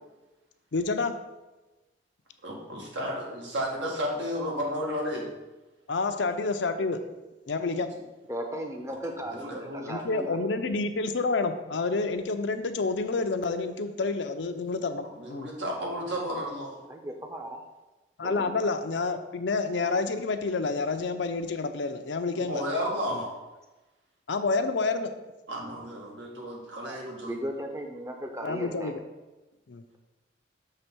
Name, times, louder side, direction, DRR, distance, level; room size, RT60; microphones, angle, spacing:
voice 1, 0.7-1.1 5.9-7.0 7.5-7.9 9.9-15.5 18.2-22.6 23.1-23.2 24.3-25.1 28.4-28.9 29.7-29.8, left 3 dB, 75° left, 7 dB, 0.6 m, -29 dB
voice 2, 2.4-5.3 9.3-9.9 15.1-16.8 22.5-23.3 25.5-27.4, equal, 80° right, -2 dB, 1.8 m, -32 dB
voice 3, 8.3-10.4 16.9-17.6 18.2-18.5 26.9-28.9, equal, 15° right, 3 dB, 0.7 m, -36 dB
6.7 x 3.5 x 6.0 m, 1.1 s
head